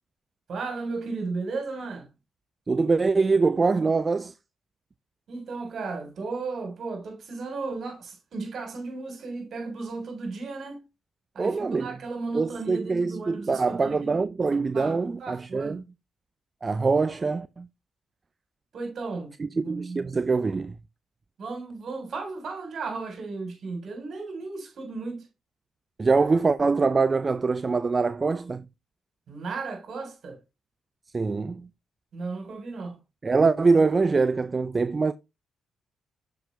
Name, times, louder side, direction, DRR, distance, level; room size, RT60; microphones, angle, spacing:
voice 1, 0.5-2.1 5.3-10.8 11.4-14.1 14.7-15.8 18.7-19.3 19.6-20.1 21.4-25.2 29.3-30.4 32.1-33.0, right 3 dB, 65° right, 3.4 m, -35 dB
voice 2, 2.7-4.3 11.4-12.0 12.3-15.9 16.6-17.7 19.4-20.8 26.0-28.7 31.1-31.7 33.2-35.1, right 4 dB, 40° right, 0.4 m, -24 dB
7.0 x 5.7 x 3.2 m
supercardioid pair, 50°, 0 cm